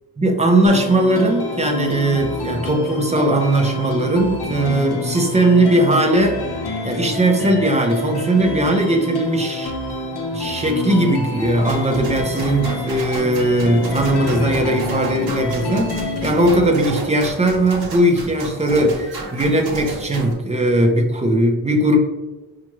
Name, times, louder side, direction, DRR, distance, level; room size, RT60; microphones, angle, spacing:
voice 1, 0.2-6.4 6.8-9.7 10.3-22.0, right 1 dB, 15° right, 2 dB, 0.5 m, -18 dB
sound 1, 0.7-16.7, left 2 dB, 75° left, 0.7 m, -28 dB
sound 2, 11.7-20.3, right 3 dB, 65° right, 0.9 m, -32 dB
5.4 x 2.4 x 3.0 m, 1.2 s
wide cardioid pair, 180°, 40 cm